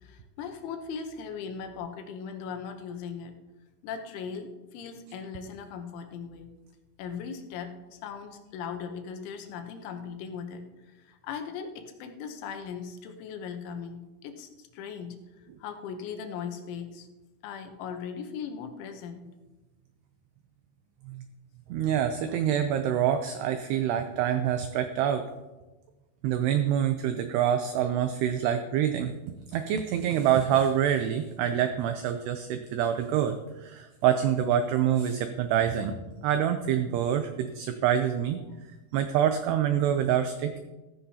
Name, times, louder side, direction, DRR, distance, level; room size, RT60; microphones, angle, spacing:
voice 1, 0.0-3.3 3.8-6.5 7.0-15.2 15.6-17.1 17.4-19.3 35.9-36.0, left 6 dB, 80° left, 6 dB, 3.3 m, -39 dB
voice 2, 21.7-25.2 26.2-29.1 29.5-33.4 33.6-35.9 36.2-38.4 38.9-40.6, right 9 dB, 90° right, 8 dB, 2.3 m, -26 dB
14.5 x 14.0 x 2.8 m, 1.1 s
omnidirectional pair, 5.5 m